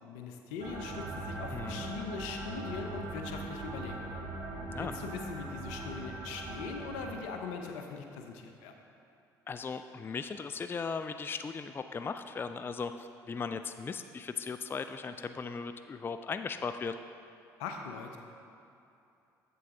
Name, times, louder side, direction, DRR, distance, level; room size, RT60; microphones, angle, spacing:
voice 1, 0.0-4.2 4.8-8.7 17.6-18.2, left 5 dB, 75° left, 4 dB, 0.7 m, -41 dB
sound 1, 0.6-7.1, right 2 dB, 60° right, 1.3 m, -40 dB
voice 2, 1.5-1.9 4.7-4.9 9.5-17.0, left 5 dB, 25° left, 9 dB, 0.3 m, -37 dB
7.9 x 6.7 x 3.7 m, 2.7 s
hypercardioid pair, 60°, 10 cm